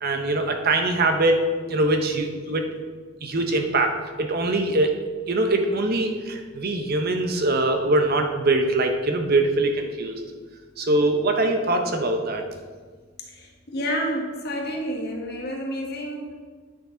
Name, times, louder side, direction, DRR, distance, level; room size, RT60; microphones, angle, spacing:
voice 1, 0.0-2.6 3.2-4.9 5.3-10.2 10.8-12.4, right 2 dB, 50° right, 5 dB, 0.8 m, -23 dB
voice 2, 13.3-16.4, equal, 55° left, 0 dB, 1.5 m, -30 dB
9.6 x 6.6 x 3.9 m, 1.5 s
head